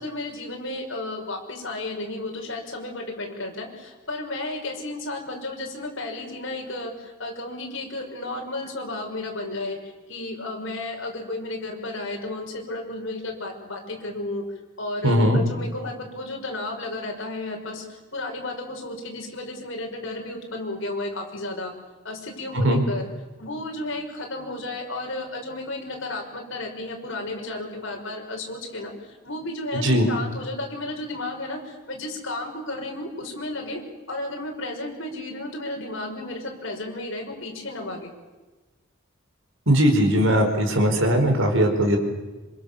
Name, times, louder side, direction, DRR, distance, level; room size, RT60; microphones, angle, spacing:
voice 1, 0.0-9.8 10.1-14.4 14.8-21.7 22.0-23.1 23.4-33.8 34.1-38.1, left 2 dB, 60° left, 1 dB, 6.0 m, -33 dB
voice 2, 15.0-15.4 22.5-22.8 29.7-30.1 39.7-42.0, equal, 65° right, 4 dB, 4.7 m, -19 dB
26.5 x 26.5 x 7.2 m, 1.2 s
head